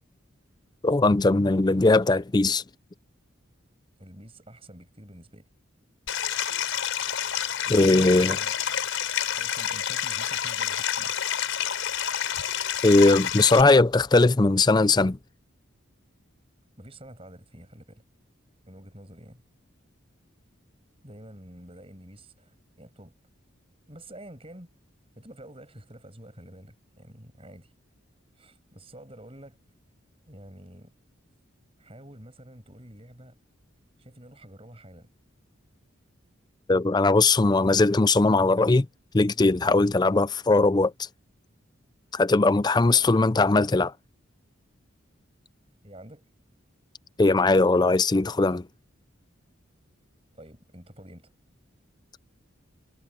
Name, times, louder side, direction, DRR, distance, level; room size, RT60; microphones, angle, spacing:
voice 1, 0.8-2.6 7.7-8.4 12.8-15.2 36.7-38.9 39.1-41.1 42.1-43.9 47.2-48.6, left 3 dB, 20° left, 0.4 m, -20 dB
voice 2, 4.0-5.5 7.6-8.6 9.4-11.2 13.4-13.8 16.8-18.0 18.7-19.4 21.0-23.1 23.9-24.7 25.2-27.7 28.3-29.6 30.3-30.9 31.8-33.4 34.0-35.1 42.9-43.4 45.8-46.2 50.3-51.3, right 1 dB, 30° right, 7.1 m, -48 dB
Stream, 6.1-13.6, left 9 dB, 80° left, 4.4 m, -29 dB
head